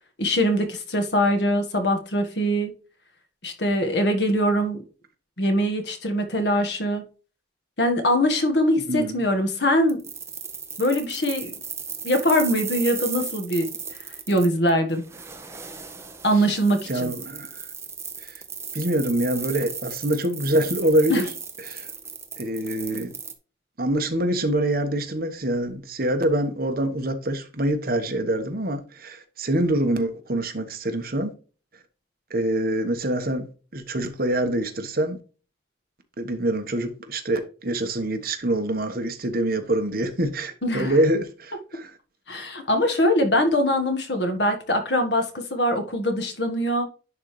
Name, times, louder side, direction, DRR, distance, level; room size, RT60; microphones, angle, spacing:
voice 1, 0.2-2.8 3.4-4.8 5.4-7.0 7.8-10.0 10.8-11.5 12.0-13.7 14.3-15.0 16.2-17.1 21.1-21.3 40.6-41.0 42.3-46.9, equal, 65° left, 1.6 m, -22 dB
sound 1, 9.9-23.3, right 6 dB, 15° right, 0.8 m, -36 dB
voice 2, 16.9-17.5 18.2-18.3 18.7-21.3 21.6-21.9 22.4-23.1 23.8-31.3 32.3-35.2 36.2-41.9, right 1 dB, 50° right, 1.3 m, -25 dB
10.5 x 4.0 x 3.2 m
head